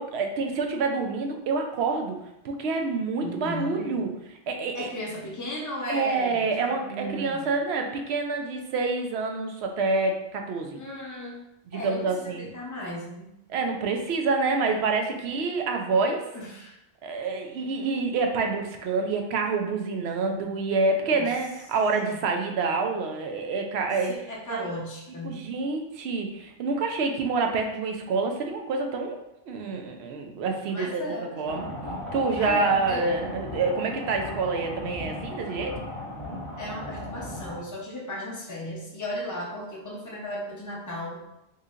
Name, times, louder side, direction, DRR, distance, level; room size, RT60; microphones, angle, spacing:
voice 1, 0.0-2.2 2.4-4.1 4.5-4.9 5.9-10.8 11.7-12.5 13.5-16.2 17.0-24.1 24.5-24.6 25.2-29.2 29.5-31.0 31.4-31.7 32.1-35.7, right 4 dB, 85° right, 3 dB, 0.8 m, -27 dB
voice 2, 3.2-4.1 4.7-7.5 10.7-11.4 11.7-13.3 16.3-16.8 21.0-21.4 22.1-22.2 24.1-25.5 30.7-31.8 32.4-33.1 36.6-41.2, left 1 dB, 20° left, -3 dB, 0.7 m, -36 dB
sound 1, 31.5-37.6, left 1 dB, 60° right, 1.2 m, -36 dB
4.2 x 2.7 x 2.4 m, 0.86 s
omnidirectional pair, 1.1 m